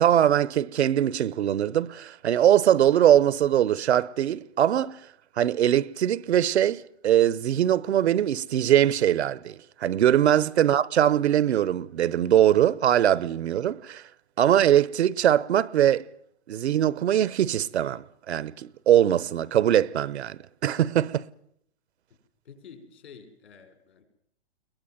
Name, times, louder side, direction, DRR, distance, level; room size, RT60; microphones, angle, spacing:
voice 1, 0.0-5.0 5.4-14.0 14.4-16.0 16.5-21.2, right 11 dB, 80° right, 0.9 m, -22 dB
voice 2, 22.4-24.0, left 6 dB, 75° left, 5.9 m, -49 dB
22.5 x 19.0 x 9.2 m
hypercardioid pair, 170°, 33 cm